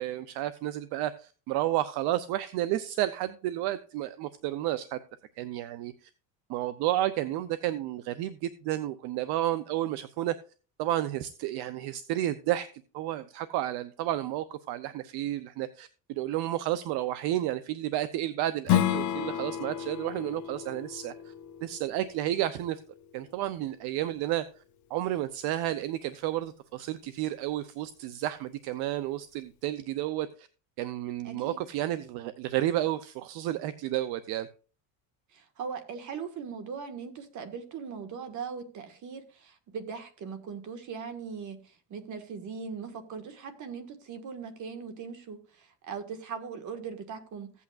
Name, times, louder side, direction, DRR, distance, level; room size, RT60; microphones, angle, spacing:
voice 1, 0.0-5.0 5.4-6.1 6.5-10.3 10.8-12.7 12.9-21.3 21.6-22.8 23.1-24.4 24.9-30.5 30.8-34.5, right 13 dB, 65° right, 0.7 m, -31 dB
Strum, 18.6-23.8, left 12 dB, 45° left, 0.8 m, -32 dB
voice 2, 31.2-31.6 35.3-47.6, right 6 dB, 45° right, 1.7 m, -40 dB
15.5 x 8.4 x 2.4 m
cardioid pair, 135°, 41 cm